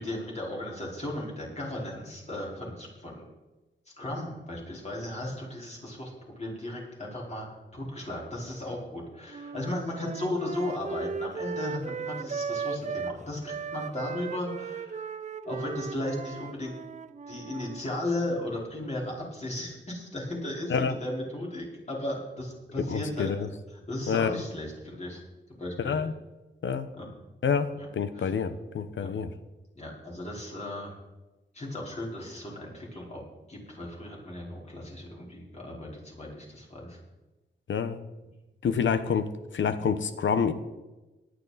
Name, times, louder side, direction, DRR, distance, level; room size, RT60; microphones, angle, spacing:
voice 1, 0.0-3.2 4.0-15.1 15.4-16.7 17.3-23.3 23.7-25.2 25.6-26.0 26.9-27.1 27.7-27.9 28.1-28.4 29.0-29.1 29.7-31.0 31.5-33.2 33.5-37.0, left 1 dB, 35° left, -3 dB, 4.6 m, -36 dB
sound 1, 9.3-13.2 13.4-17.8, right 5 dB, 35° right, 0.5 m, -37 dB
voice 2, 22.8-23.4 24.1-24.4 25.8-26.1 26.6-26.9 27.4-29.3 37.7-38.0 38.6-40.5, left 6 dB, 75° left, 11 dB, 1.0 m, -27 dB
18.0 x 11.0 x 4.2 m, 1.1 s
wide cardioid pair, 140°, 20 cm